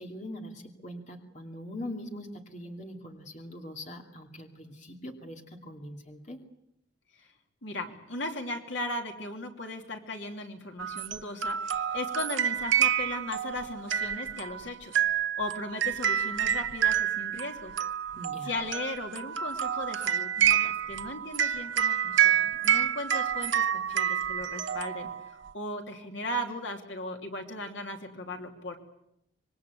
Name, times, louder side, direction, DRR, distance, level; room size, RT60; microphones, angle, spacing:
voice 1, 0.0-6.4 18.1-18.6, left 1 dB, 40° left, 3 dB, 2.7 m, -42 dB
voice 2, 7.6-17.7 18.4-28.8, left 1 dB, 70° left, 4 dB, 2.9 m, -37 dB
sound 1, 10.8-25.5, right 9 dB, 75° right, 0.9 m, -28 dB
26.0 x 22.5 x 8.4 m, 0.81 s
head